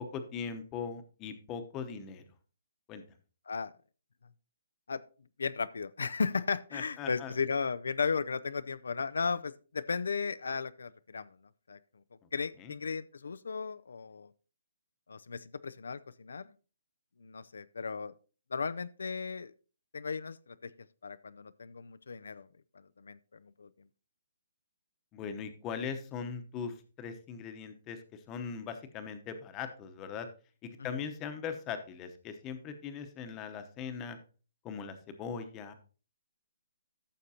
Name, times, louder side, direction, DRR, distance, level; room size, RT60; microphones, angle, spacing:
voice 1, 0.0-2.2 2.9-3.0 6.7-7.3 12.6-12.7 25.1-28.0 28.3-30.3 30.6-34.2 34.6-35.7, left 6 dB, 20° left, 8 dB, 0.9 m, -40 dB
voice 2, 5.4-11.4 11.7-11.8 12.3-14.3 15.1-16.4 17.2-18.1 18.5-19.5 19.9-20.7 21.0-22.5 23.0-23.7 30.8-30.9, left 5 dB, 85° left, 14 dB, 0.4 m, -35 dB
14.5 x 6.5 x 2.8 m, 0.37 s
hypercardioid pair, 165°, 0 cm